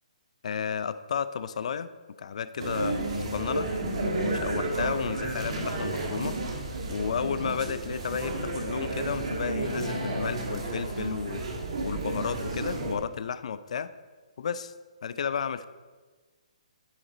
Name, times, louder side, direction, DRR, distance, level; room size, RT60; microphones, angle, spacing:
voice 1, 0.4-1.9 2.2-6.4 6.9-11.4 11.8-13.9 14.4-14.7 15.0-15.7, left 7 dB, 60° left, 14 dB, 0.4 m, -32 dB
sound 1, 2.6-13.0, right 2 dB, 55° right, 1.5 m, -32 dB
11.5 x 4.1 x 3.8 m, 1.4 s
hypercardioid pair, 155°, 4 cm